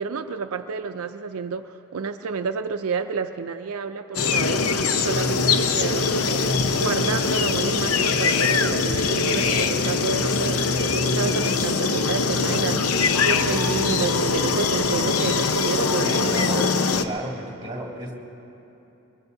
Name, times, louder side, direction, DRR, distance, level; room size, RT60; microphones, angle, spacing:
voice 1, 0.0-4.7 5.0-16.5, right 5 dB, 80° right, 8 dB, 0.5 m, -30 dB
sound 1, 4.1-17.0, left 4 dB, 80° left, 0.7 m, -22 dB
voice 2, 16.0-16.7 17.0-18.1, right 1 dB, 20° right, -2 dB, 2.4 m, -33 dB
24.0 x 21.5 x 2.7 m, 2.9 s
head